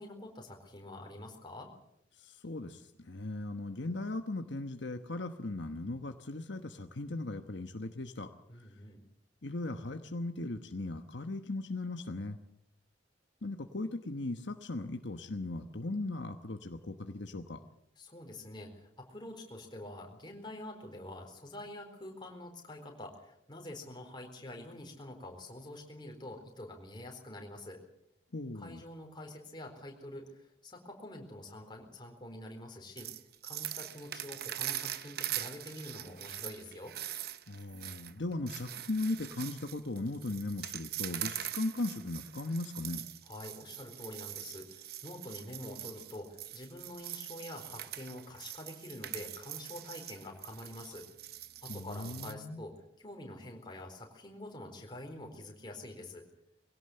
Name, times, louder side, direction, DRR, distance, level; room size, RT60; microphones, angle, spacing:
voice 1, 0.0-1.7 8.5-9.0 18.0-27.8 28.5-37.0 43.2-51.1 51.6-56.2, left 1 dB, 25° left, 2 dB, 4.2 m, -46 dB
voice 2, 2.2-8.3 8.6-8.7 9.4-12.4 13.4-17.6 28.3-28.8 37.5-43.0 51.7-52.6, left 2 dB, 70° left, 6 dB, 1.2 m, -38 dB
sound 1, 33.0-52.3, right 12 dB, 55° right, 0.8 m, -42 dB
22.0 x 17.0 x 7.9 m, 0.77 s
head